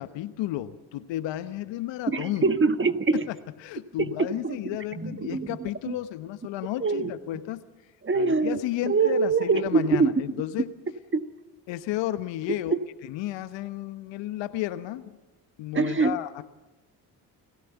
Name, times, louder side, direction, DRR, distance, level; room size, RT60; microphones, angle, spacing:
voice 1, 0.0-2.5 3.3-7.6 8.1-10.7 11.7-12.7 13.1-15.2 15.6-16.4, left 14 dB, 65° left, 13 dB, 1.2 m, -32 dB
voice 2, 2.1-3.3 4.0-4.1 4.4-5.9 6.8-7.1 8.0-8.6 8.8-10.1 11.1-11.2 12.7-12.8 15.7-16.2, right 4 dB, 25° right, 10 dB, 1.5 m, -24 dB
29.5 x 16.0 x 7.1 m, 1.1 s
hypercardioid pair, 50°, 47 cm